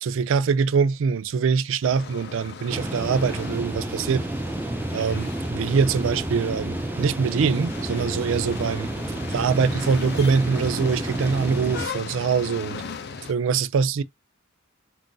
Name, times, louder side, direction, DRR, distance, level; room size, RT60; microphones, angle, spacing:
voice 1, 0.0-4.3 4.9-8.9 9.3-12.8 13.3-14.0, right 5 dB, 80° right, 0.4 m, -23 dB
sound 1, 1.8-13.3, left 5 dB, 55° left, 0.5 m, -38 dB
sound 2, 2.7-11.9, right 1 dB, 10° right, 0.3 m, -30 dB
3.8 x 2.4 x 3.8 m
head